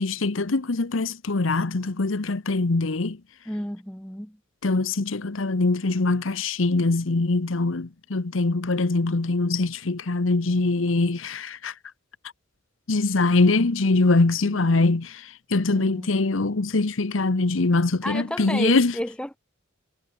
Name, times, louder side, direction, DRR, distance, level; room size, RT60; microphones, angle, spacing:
voice 1, 0.0-3.2 4.6-11.7 12.9-18.9, left 3 dB, 75° left, 1.0 m, -23 dB
voice 2, 3.5-4.4 14.4-14.6 15.7-16.2 18.0-19.4, equal, 5° left, 4.0 m, -32 dB
head